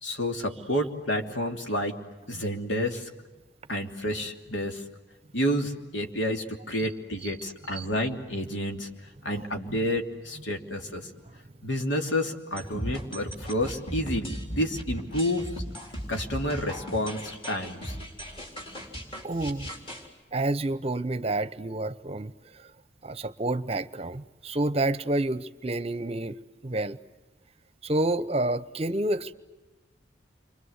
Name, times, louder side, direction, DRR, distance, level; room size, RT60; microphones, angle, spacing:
voice 1, 0.0-2.0 2.3-3.1 3.7-4.8 5.3-8.9 9.2-11.1 11.6-15.6 16.1-18.0, equal, 80° left, 3 dB, 3.0 m, -30 dB
sound 1, 12.6-20.1, equal, 30° left, 4.4 m, -37 dB
voice 2, 19.2-19.7 20.3-22.6 23.0-26.4 26.6-27.0 27.8-29.3, right 2 dB, 30° right, 14 dB, 0.8 m, -29 dB
30.0 x 24.5 x 8.1 m, 1.1 s
head